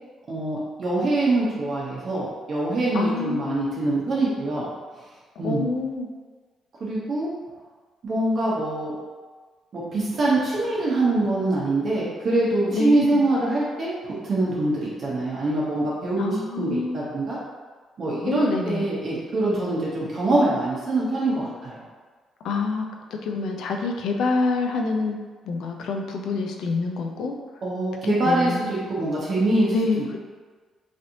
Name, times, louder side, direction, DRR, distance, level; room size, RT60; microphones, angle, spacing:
voice 1, 0.3-4.7 5.4-5.7 6.8-7.3 8.0-8.9 9.7-13.9 14.2-17.4 18.0-21.8 27.6-30.2, right 2 dB, 50° right, -6 dB, 0.8 m, -24 dB
voice 2, 2.9-3.9 5.4-6.1 12.7-13.2 16.2-17.0 18.3-18.9 22.4-22.9 23.1-25.2 25.4-27.4 28.0-28.7 29.7-30.2, left 3 dB, 75° left, 3 dB, 0.4 m, -27 dB
3.2 x 2.8 x 2.6 m, 1.4 s
cardioid pair, 90°, 0 cm